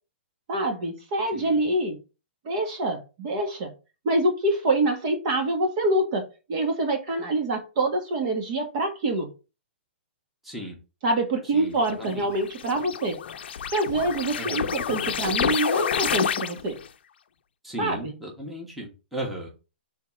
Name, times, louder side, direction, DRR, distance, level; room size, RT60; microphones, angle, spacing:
voice 1, 0.5-2.0 2.4-3.7 4.0-9.3 11.0-13.2 13.7-16.8 17.8-18.1, right 2 dB, 35° right, 1.5 m, -26 dB
voice 2, 1.3-1.6 10.4-10.8 11.5-12.3 14.4-14.8 17.6-19.5, right 1 dB, ahead, 1.4 m, -36 dB
sound 1, 11.9-16.9, left 8 dB, 60° left, 0.7 m, -29 dB
5.8 x 3.6 x 4.4 m
hypercardioid pair, 170°, 6 cm